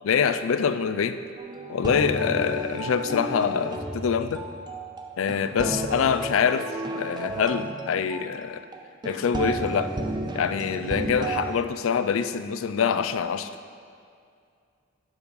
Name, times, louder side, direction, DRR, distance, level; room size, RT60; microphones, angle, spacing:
voice 1, 0.0-1.2 1.7-4.4 5.2-6.7 6.9-8.6 9.0-9.9 10.3-13.5, left 6 dB, 80° left, 11 dB, 0.4 m, -25 dB
sound 1, 1.4-11.5, right 2 dB, 20° right, 0.5 m, -33 dB
7.2 x 6.7 x 5.3 m, 2.3 s
head